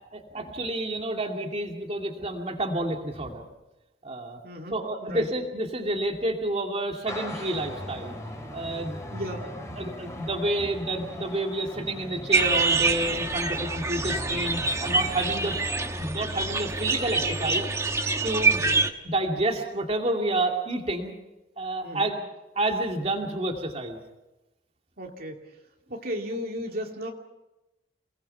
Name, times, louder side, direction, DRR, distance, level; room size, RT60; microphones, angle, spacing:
voice 1, 0.1-3.4 4.0-4.4 4.7-8.1 8.5-9.0 9.4-9.5 9.7-15.5 16.0-17.7 18.2-18.6 19.0-21.1 21.6-22.2 22.6-24.0, right 1 dB, 35° right, 2 dB, 2.6 m, -29 dB
voice 2, 4.4-5.3 9.1-9.4 15.4-15.5 18.4-18.8 21.8-22.1 25.0-25.5 25.9-27.1, equal, 55° right, 1 dB, 2.5 m, -35 dB
sound 1, 7.1-16.0, left 1 dB, 15° left, 4.4 m, -39 dB
sound 2, 12.3-18.9, right 3 dB, 15° right, 1.2 m, -26 dB
29.5 x 19.5 x 5.7 m, 1.0 s
head